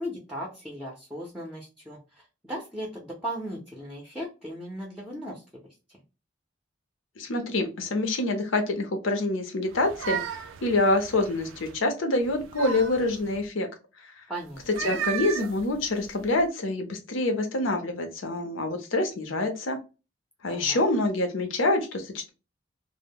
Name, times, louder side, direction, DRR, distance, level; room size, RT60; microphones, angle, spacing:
voice 1, 0.0-5.4 14.3-15.0 20.5-20.8, equal, 5° right, -2 dB, 0.5 m, -37 dB
voice 2, 7.2-13.7 14.0-14.2 14.7-19.8 20.4-22.3, left 2 dB, 85° left, 5 dB, 0.7 m, -26 dB
sound 1, 9.7-11.8 12.2-13.4 14.6-16.4, right 8 dB, 85° right, 0.4 m, -36 dB
2.1 x 2.0 x 3.5 m, 0.31 s
head